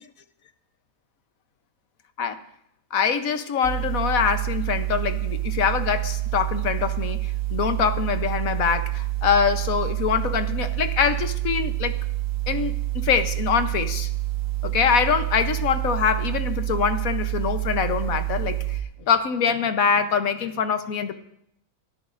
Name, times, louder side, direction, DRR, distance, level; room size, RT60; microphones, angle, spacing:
voice 1, 2.9-7.2 7.5-11.9 12.5-14.1 14.6-18.6 19.1-21.1, left 7 dB, 70° left, 9 dB, 1.3 m, -24 dB
sound 1, 3.6-18.8, right 16 dB, 60° right, 1.6 m, -27 dB
29.0 x 13.0 x 2.6 m, 0.74 s
omnidirectional pair, 1.6 m